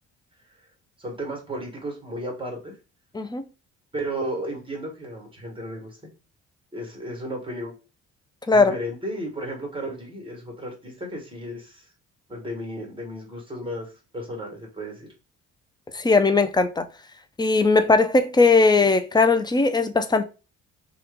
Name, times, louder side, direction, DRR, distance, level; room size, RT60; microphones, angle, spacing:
voice 1, 1.0-2.7 3.9-6.0 6.7-7.7 8.5-11.9 12.3-15.1, right 1 dB, 15° right, 1.4 m, -34 dB
voice 2, 3.1-3.5 8.5-8.8 15.9-16.9 17.4-20.2, left 3 dB, 15° left, 0.4 m, -19 dB
2.9 x 2.4 x 3.4 m
cardioid pair, 90°, 30 cm